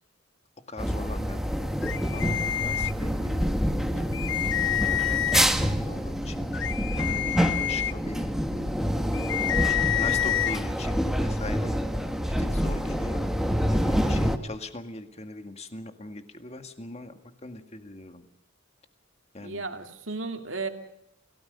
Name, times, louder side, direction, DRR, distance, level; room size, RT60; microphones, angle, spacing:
voice 1, 0.7-1.6 2.1-3.5 3.9-4.1 4.5-6.5 7.0-8.4 9.7-11.8 12.4-13.3 13.7-18.3 19.3-19.6, left 2 dB, 30° left, 8 dB, 1.9 m, -40 dB
sound 1, 0.8-14.4, equal, ahead, 1.4 m, -27 dB
sound 2, 1.8-3.4 3.8-3.9 4.1-5.7 6.2-10.6, left 11 dB, 60° left, 0.8 m, -29 dB
voice 2, 19.4-20.7, right 3 dB, 65° right, 5 dB, 2.6 m, -34 dB
28.0 x 17.5 x 6.7 m, 0.82 s
head